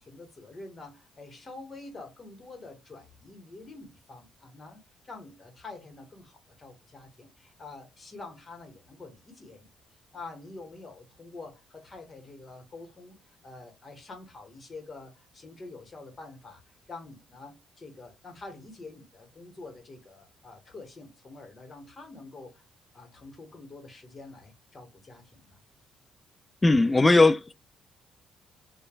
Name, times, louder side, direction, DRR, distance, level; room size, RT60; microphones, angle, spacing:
voice 1, 0.0-9.7 10.1-22.6 22.9-25.6, left 3 dB, 35° left, 1.1 m, -46 dB
voice 2, 26.6-27.5, left 2 dB, 20° left, 0.3 m, -19 dB
3.0 x 2.2 x 2.2 m
cardioid pair, 90°, 0 cm